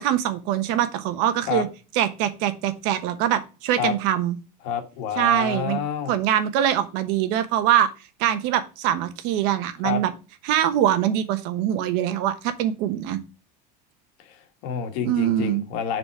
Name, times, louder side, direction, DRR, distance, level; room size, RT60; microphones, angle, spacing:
voice 1, 0.0-1.7 1.9-4.4 5.2-5.8 6.1-7.9 8.2-10.1 10.4-13.2 15.0-15.6, right 11 dB, 65° right, 11 dB, 1.1 m, -23 dB
voice 2, 4.6-6.2 9.8-10.0 14.3-16.0, left 7 dB, 70° left, 6 dB, 1.7 m, -28 dB
6.8 x 4.1 x 4.7 m, 0.31 s
cardioid pair, 155°, 20 cm